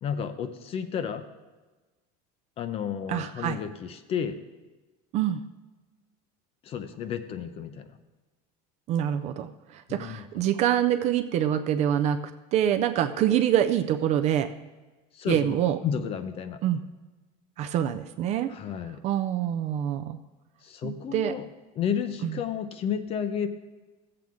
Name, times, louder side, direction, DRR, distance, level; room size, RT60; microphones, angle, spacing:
voice 1, 0.0-1.3 2.6-4.4 6.6-7.9 9.9-10.4 15.1-15.5 15.8-16.6 18.5-19.0 20.6-21.5 21.8-23.5, left 8 dB, 30° left, 11 dB, 0.5 m, -32 dB
voice 2, 3.1-3.6 5.1-5.4 8.9-12.2 12.5-14.5 15.3-15.8 16.6-16.8 17.6-18.5 19.0-20.2 20.8-21.3 22.2-22.4, right 10 dB, 35° right, 9 dB, 0.4 m, -25 dB
15.0 x 7.7 x 3.6 m, 1.2 s
cardioid pair, 165°, 21 cm